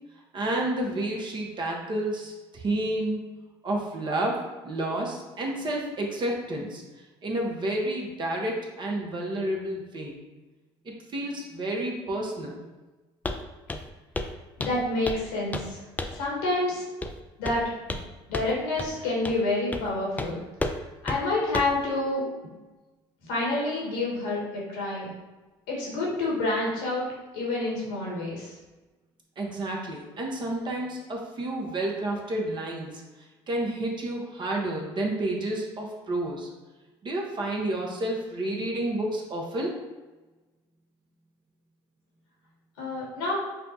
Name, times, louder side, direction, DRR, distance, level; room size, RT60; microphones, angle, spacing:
voice 1, 0.3-3.2 3.6-4.4 4.6-6.8 7.2-10.2 10.8-12.6 29.4-33.0 33.5-36.5 37.0-39.8, right 1 dB, 40° right, -1 dB, 1.0 m, -30 dB
Walk footsteps, 13.2-13.4 13.7-13.9 14.1-14.3 14.6-15.3 15.5-15.7 16.0-16.2 17.0-17.2 17.4-18.1 18.3-18.5 18.8-18.9 19.2-19.4 19.7-19.9 20.2-20.3 20.6-20.8 21.1-21.2 21.5-21.8, left 2 dB, 15° left, 0.3 m, -32 dB
voice 2, 14.6-15.8 16.1-16.9 17.4-17.6 17.9-18.0 18.3-20.4 21.0-22.2 23.2-25.1 25.7-27.0 27.3-28.5 42.8-43.3, left 2 dB, 90° left, -4 dB, 1.4 m, -28 dB
5.6 x 2.3 x 2.7 m, 1.2 s
supercardioid pair, 75°, 12 cm